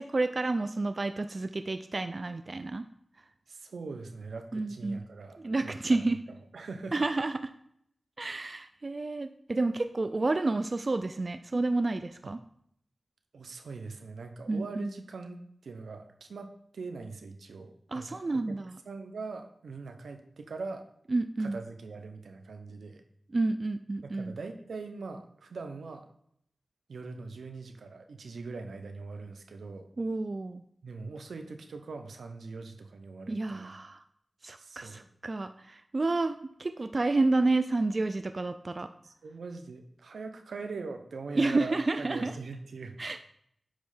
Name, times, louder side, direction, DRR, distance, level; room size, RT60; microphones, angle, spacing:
voice 1, 0.0-2.9 4.5-5.0 5.4-6.2 6.9-7.5 8.2-12.4 14.5-14.9 17.9-18.8 21.1-21.6 23.3-24.3 30.0-30.6 33.3-34.0 34.4-38.9 41.4-42.3 43.0-43.2, right 2 dB, 50° right, 9 dB, 0.3 m, -30 dB
voice 2, 3.5-6.0 6.5-6.9 13.3-18.6 18.9-20.8 21.4-23.0 24.0-26.1 26.9-29.9 30.8-33.7 34.6-35.0 39.0-43.0, right 4 dB, 90° right, 6 dB, 0.7 m, -42 dB
8.6 x 3.1 x 5.6 m, 0.71 s
cardioid pair, 45°, 0 cm